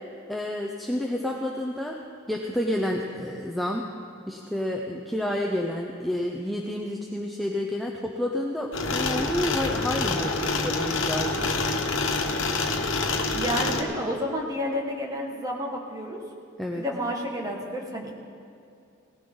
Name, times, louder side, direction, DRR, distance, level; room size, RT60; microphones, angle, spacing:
voice 1, 0.3-2.0 2.3-3.9 4.3-11.6 16.6-16.8, left 1 dB, ahead, -1 dB, 0.6 m, -29 dB
sound 1, 8.7-13.8, left 3 dB, 75° left, 1.3 m, -26 dB
voice 2, 13.3-16.2 16.7-18.1, equal, 15° right, -1 dB, 1.7 m, -30 dB
18.5 x 15.0 x 3.9 m, 2.6 s
head